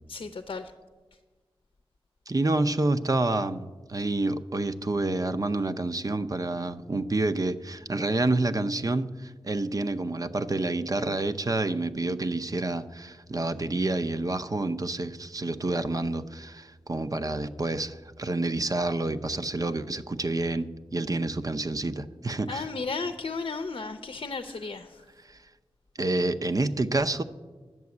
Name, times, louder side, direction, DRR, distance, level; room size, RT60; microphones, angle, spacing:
voice 1, 0.1-0.7 22.5-25.0, left 4 dB, 65° left, 8 dB, 0.6 m, -34 dB
voice 2, 2.3-22.7 26.0-27.2, right 2 dB, 40° right, 11 dB, 0.6 m, -28 dB
11.0 x 7.0 x 9.6 m, 1.3 s
wide cardioid pair, 70°, 9 cm